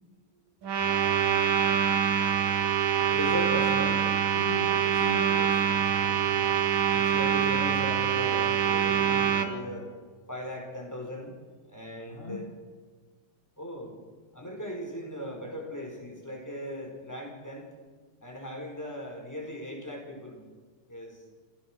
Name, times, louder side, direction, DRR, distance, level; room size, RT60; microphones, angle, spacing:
sound 1, 0.6-9.5, right 8 dB, 75° right, 2.5 m, -25 dB
voice 1, 3.1-4.1 6.9-9.9 10.3-11.3 11.7-12.5 13.6-13.9 14.3-17.7 18.2-20.4 20.9-21.2, equal, 10° left, 1 dB, 4.8 m, -38 dB
voice 2, 4.3-6.5 12.1-12.4, left 3 dB, 25° left, -1 dB, 3.0 m, -40 dB
27.0 x 16.5 x 6.3 m, 1.5 s
omnidirectional pair, 2.2 m